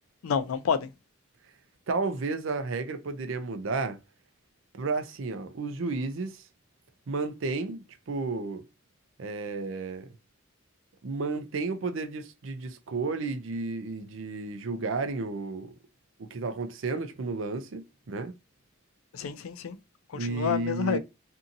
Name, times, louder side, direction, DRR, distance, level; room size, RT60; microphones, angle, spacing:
voice 1, 0.2-0.9 19.1-19.8 20.1-21.0, left 6 dB, 90° left, 0.4 m, -29 dB
voice 2, 1.9-4.0 4.7-6.4 7.1-8.6 9.2-10.1 11.0-15.7 16.2-18.3 20.1-21.0, right 3 dB, 70° right, 0.5 m, -32 dB
2.7 x 2.6 x 2.5 m
head